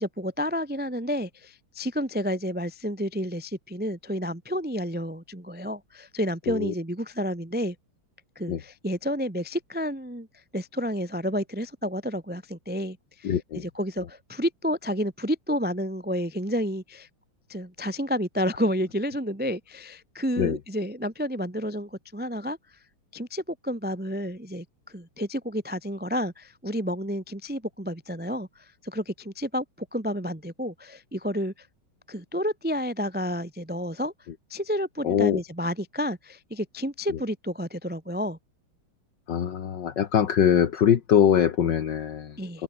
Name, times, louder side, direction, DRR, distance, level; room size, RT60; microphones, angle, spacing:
voice 1, 0.0-7.8 8.4-10.3 10.5-17.1 17.5-22.6 23.1-31.7 32.1-34.1 34.5-38.4 42.4-42.6, equal, 10° right, 0.4 m, -30 dB
voice 2, 13.2-13.6 20.4-20.6 35.0-35.4 39.3-42.6, left 9 dB, 60° left, 1.9 m, -23 dB
open air
omnidirectional pair, 2.3 m